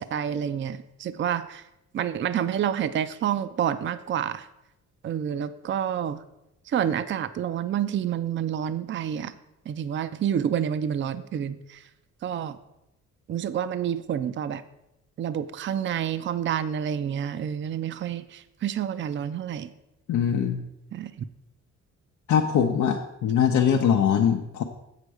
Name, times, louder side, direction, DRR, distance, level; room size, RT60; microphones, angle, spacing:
voice 1, 0.0-1.6 1.9-4.5 5.0-6.2 6.7-9.3 9.7-11.8 12.2-12.6 13.3-14.6 15.2-19.7 20.9-21.2, right 9 dB, 40° right, 12 dB, 0.5 m, -28 dB
voice 2, 20.1-20.6 22.3-24.6, left 8 dB, 75° left, 2 dB, 0.7 m, -22 dB
7.7 x 6.6 x 4.8 m, 0.88 s
cardioid pair, 90°, 30 cm